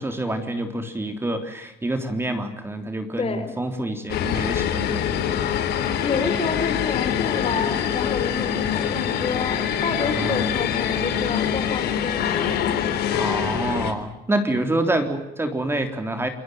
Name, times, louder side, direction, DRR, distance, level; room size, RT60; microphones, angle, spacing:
voice 1, 0.0-5.2 10.2-10.4 13.1-16.3, right 1 dB, 15° right, 6 dB, 3.6 m, -27 dB
voice 2, 3.2-3.5 6.0-12.7, left 5 dB, 35° left, 9 dB, 4.7 m, -29 dB
sound 1, 4.1-13.9, left 9 dB, 70° left, 3.7 m, -24 dB
29.0 x 20.0 x 9.3 m, 0.89 s
cardioid pair, 110°, 17 cm